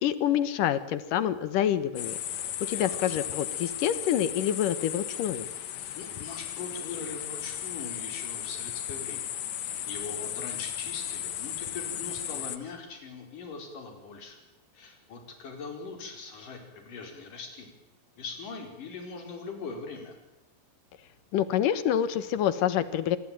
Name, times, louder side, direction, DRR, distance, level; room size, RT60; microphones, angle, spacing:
voice 1, 0.0-2.2 2.6-5.5 21.3-23.2, left 10 dB, 65° left, 14 dB, 2.3 m, -27 dB
sound 1, 2.0-12.6, left 11 dB, 80° left, 1.5 m, -35 dB
voice 2, 2.7-3.3 6.0-9.2 9.9-14.4 14.7-17.7 18.2-20.2, left 4 dB, 50° left, 4 dB, 6.2 m, -41 dB
26.0 x 22.0 x 9.1 m, 0.94 s
omnidirectional pair, 5.0 m